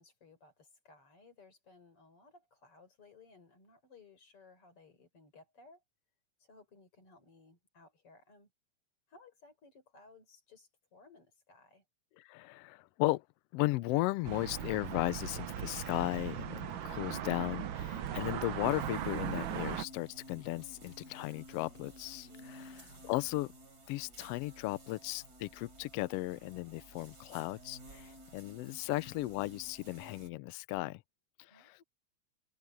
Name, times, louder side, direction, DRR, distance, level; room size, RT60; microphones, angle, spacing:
voice 1, 0.0-5.8 6.4-8.5 9.1-11.8 22.3-23.1 31.4-31.8, left 3 dB, 45° left, 5.9 m, -60 dB
voice 2, 12.2-13.2 13.5-23.5 23.9-31.0 31.4-31.8, left 19 dB, 85° left, 1.3 m, -36 dB
sound 1, 14.2-19.8, right 10 dB, 80° right, 1.0 m, -38 dB
sound 2, 18.6-30.3, equal, 30° right, 4.6 m, -54 dB
omnidirectional pair, 3.4 m